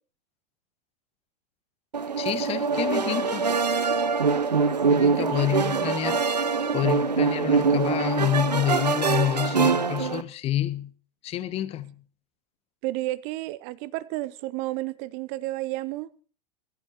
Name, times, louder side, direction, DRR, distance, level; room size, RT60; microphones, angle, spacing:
sound 1, 1.9-10.2, right 5 dB, 80° right, 0.8 m, -24 dB
voice 1, 2.2-3.5 4.9-6.4 6.7-10.9 11.2-12.0, left 12 dB, 30° left, 1.2 m, -28 dB
voice 2, 5.2-5.5 12.8-16.1, right 18 dB, 40° right, 0.7 m, -31 dB
21.0 x 11.5 x 3.0 m
figure-of-eight pair, 95°, 21 cm